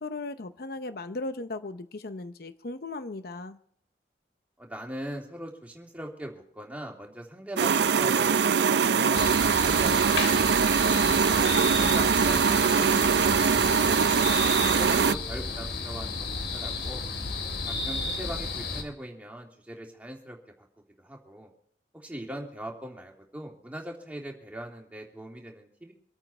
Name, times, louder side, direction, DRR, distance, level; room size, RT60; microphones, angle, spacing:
voice 1, 0.0-3.6, left 2 dB, 60° left, 10 dB, 0.7 m, -37 dB
voice 2, 4.6-10.3 11.0-11.5 11.7-14.3 14.7-16.3 16.5-17.0 17.6-20.4 21.0-21.5 21.9-25.9, right 1 dB, 10° right, 0 dB, 2.9 m, -40 dB
sound 1, 7.6-15.2, right 6 dB, 70° right, 0.5 m, -22 dB
sound 2, 9.1-18.8, left 3 dB, 80° left, 3.2 m, -32 dB
25.5 x 9.0 x 4.4 m, 0.66 s
head